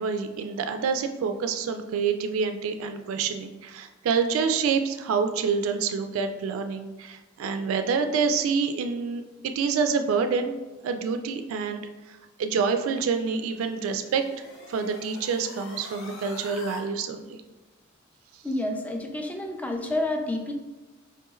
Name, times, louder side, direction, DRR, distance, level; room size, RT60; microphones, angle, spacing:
voice 1, 0.0-10.6 10.8-14.3 14.7-17.4, right 5 dB, 75° right, 7 dB, 0.3 m, -27 dB
sound 1, 13.0-16.8, left 2 dB, 70° left, 0.7 m, -45 dB
voice 2, 18.4-20.5, left 1 dB, 5° left, 3 dB, 0.3 m, -29 dB
4.7 x 3.0 x 2.3 m, 1.2 s
head